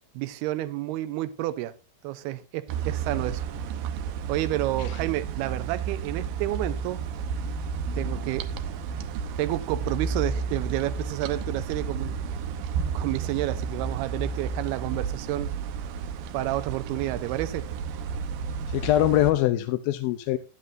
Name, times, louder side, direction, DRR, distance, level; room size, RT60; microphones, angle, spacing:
voice 1, 0.1-1.7 2.0-3.4 4.3-7.0 8.0-8.5 9.4-12.2 12.9-15.6 16.3-17.7, right 15 dB, 85° right, 2.8 m, -30 dB
sound 1, 2.7-19.3, right 6 dB, 70° right, 2.5 m, -32 dB
voice 2, 18.7-20.4, left 14 dB, 80° left, 2.4 m, -23 dB
16.0 x 11.5 x 2.6 m
omnidirectional pair, 4.4 m